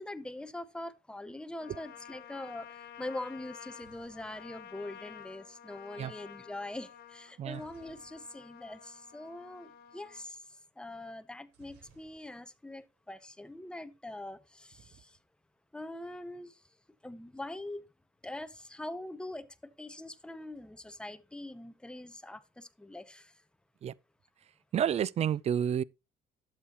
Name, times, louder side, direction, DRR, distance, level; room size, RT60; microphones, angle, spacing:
voice 1, 0.0-15.2 15.7-16.6 17.0-17.8 18.2-23.4, left 1 dB, 5° left, 0.7 m, -43 dB
Trumpet, 1.6-10.3, left 8 dB, 65° left, 1.5 m, -51 dB
sound 1, 3.5-5.6 7.5-8.7 9.0-9.1 9.3-9.6 11.5-12.7 13.0-13.6, right 5 dB, 90° right, 4.3 m, -63 dB
voice 2, 24.7-25.8, right 9 dB, 40° right, 0.4 m, -30 dB
12.0 x 7.4 x 2.9 m
cardioid pair, 110°, 17 cm